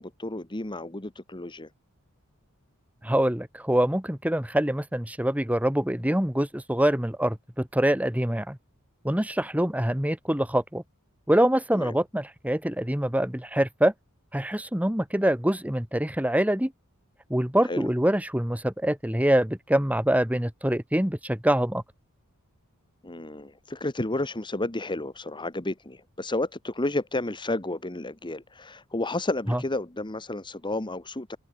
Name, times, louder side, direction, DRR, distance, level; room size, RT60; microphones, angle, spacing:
voice 1, 0.0-1.7 11.7-11.9 17.6-17.9 23.0-31.4, left 2 dB, 20° left, 1.5 m, -31 dB
voice 2, 3.0-8.6 9.0-10.8 11.3-13.9 14.3-16.7 17.3-21.8 29.5-29.6, right 1 dB, 5° right, 2.1 m, -25 dB
head